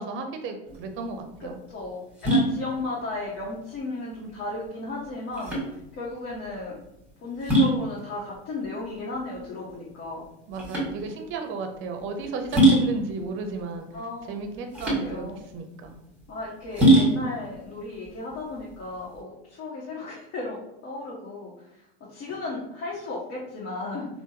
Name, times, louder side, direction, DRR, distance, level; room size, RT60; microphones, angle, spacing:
voice 1, 0.0-1.6 10.5-13.9 14.3-15.3 15.5-16.0, right 3 dB, 40° right, 5 dB, 0.6 m, -34 dB
sound 1, 0.7-19.2, right 1 dB, 5° right, 1.4 m, -25 dB
voice 2, 1.4-5.5 6.0-6.8 7.2-10.2 13.9-14.4 15.0-15.4 16.3-21.7 22.1-24.1, left 2 dB, 45° left, -5 dB, 0.9 m, -35 dB
3.3 x 2.1 x 2.8 m, 0.85 s
hypercardioid pair, 90°, 30 cm